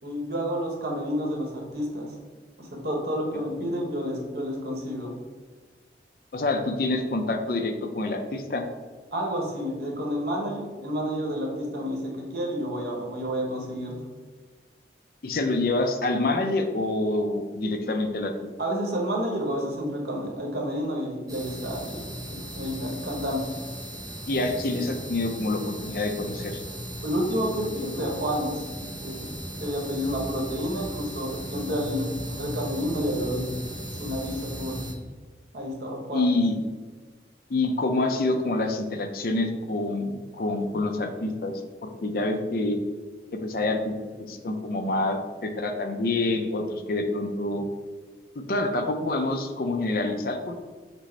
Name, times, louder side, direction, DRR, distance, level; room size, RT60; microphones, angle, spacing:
voice 1, 0.0-2.1 2.6-5.1 9.1-14.1 18.6-22.0 22.3-23.6 27.0-28.6 29.0-29.3 29.6-33.5 34.0-34.8 35.5-36.3, equal, 60° right, -1 dB, 1.0 m, -30 dB
voice 2, 6.3-8.7 15.2-18.3 24.3-26.6 36.1-36.6 37.5-42.8 43.3-43.9 44.3-47.7 48.4-50.6, left 2 dB, 50° left, 5 dB, 0.4 m, -27 dB
sound 1, 21.3-34.9, equal, 20° right, 0.6 m, -37 dB
6.1 x 2.0 x 4.3 m, 1.4 s
head